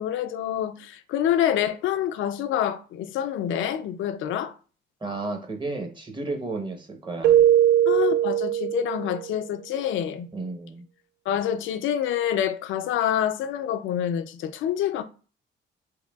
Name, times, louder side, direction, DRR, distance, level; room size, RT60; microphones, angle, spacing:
voice 1, 0.0-4.5 7.8-10.3 11.3-15.0, left 10 dB, 80° left, 0.4 m, -27 dB
voice 2, 5.0-7.4 10.3-10.9, right 3 dB, 25° right, 0.9 m, -32 dB
Keyboard (musical), 7.2-9.3, right 11 dB, 70° right, 0.4 m, -20 dB
4.7 x 2.7 x 2.3 m
cardioid pair, 90°, 20 cm